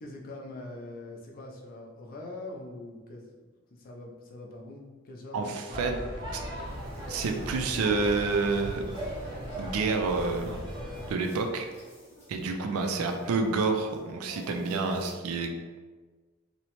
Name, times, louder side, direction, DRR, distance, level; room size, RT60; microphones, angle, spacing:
voice 1, 0.0-3.3 3.7-5.9 12.4-12.5, left 2 dB, 45° left, 0 dB, 0.4 m, -43 dB
voice 2, 5.3-6.0 6.3-6.4 7.1-8.8 9.6-10.6 11.1-11.7 12.3-15.6, right 4 dB, 85° right, 4 dB, 0.3 m, -28 dB
sound 1, 5.7-11.1, equal, 20° right, 0.6 m, -38 dB
sound 2, 6.6-15.1, equal, 10° left, 0.8 m, -52 dB
2.8 x 2.0 x 2.9 m, 1.4 s
head